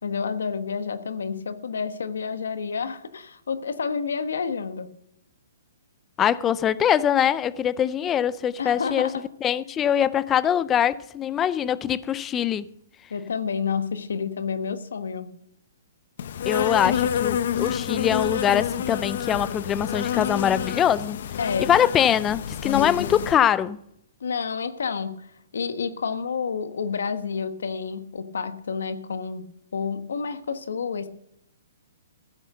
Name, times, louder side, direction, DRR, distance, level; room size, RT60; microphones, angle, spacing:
voice 1, 0.0-4.9 8.6-9.2 13.1-15.3 21.4-21.7 24.2-25.3 25.5-29.4 29.7-31.1, left 5 dB, 85° left, 1.3 m, -29 dB
voice 2, 6.2-9.1 9.4-12.6 16.5-21.2 21.6-23.8, left 9 dB, 15° left, 0.4 m, -23 dB
Insect, 16.2-23.4, left 9 dB, 55° left, 0.7 m, -28 dB
15.0 x 7.4 x 6.6 m
hypercardioid pair, 160°, 0 cm